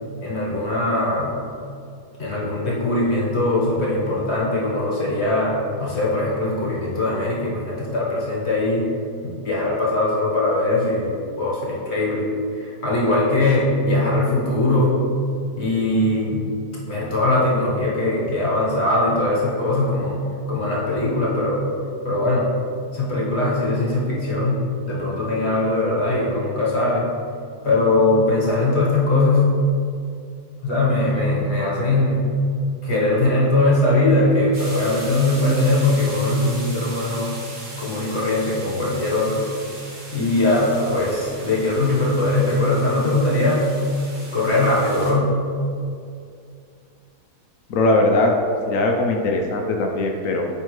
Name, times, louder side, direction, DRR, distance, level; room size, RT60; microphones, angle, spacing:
voice 1, 0.2-1.4 2.2-8.9 9.2-12.3 12.5-15.0 15.6-16.5 16.9-20.2 20.5-21.6 22.0-22.5 22.9-24.6 24.9-27.1 27.6-29.5 30.6-32.3 32.8-37.4 37.8-39.5 40.1-43.7 44.3-45.3, left 2 dB, 45° left, -6 dB, 1.4 m, -21 dB
sound 1, 34.5-45.1, right 2 dB, 60° right, 1.8 m, -39 dB
voice 2, 47.7-48.3 48.7-50.5, left 2 dB, 70° left, 1 dB, 0.8 m, -20 dB
8.8 x 3.4 x 3.2 m, 2.4 s
omnidirectional pair, 1.8 m